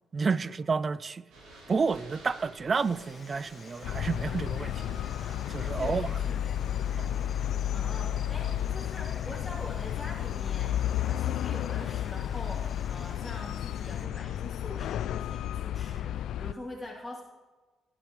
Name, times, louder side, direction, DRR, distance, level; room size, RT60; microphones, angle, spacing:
voice 1, 0.1-1.2 1.7-5.0 5.5-6.1 7.0-7.1, right 5 dB, 35° right, 0.4 m, -30 dB
sound 1, 1.3-6.3, right 2 dB, 85° right, 4.4 m, -51 dB
Insect, 2.7-14.1, left 4 dB, 30° left, 1.5 m, -51 dB
sound 2, 3.8-16.5, left 11 dB, 80° left, 0.3 m, -32 dB
voice 2, 5.7-6.7 7.7-17.2, left 1 dB, ahead, 3.1 m, -44 dB
19.0 x 11.5 x 3.2 m
cardioid pair, 90°, 0 cm